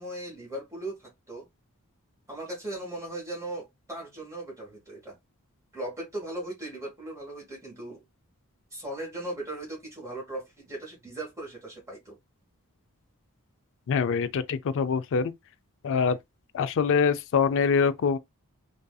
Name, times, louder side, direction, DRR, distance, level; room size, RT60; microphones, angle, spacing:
voice 1, 0.0-1.5 2.3-5.1 5.7-8.0 8.7-12.2, right 1 dB, 15° right, 1.2 m, -38 dB
voice 2, 13.9-15.3 15.8-16.2 16.5-18.2, left 6 dB, 60° left, 0.4 m, -24 dB
2.6 x 2.5 x 2.2 m
head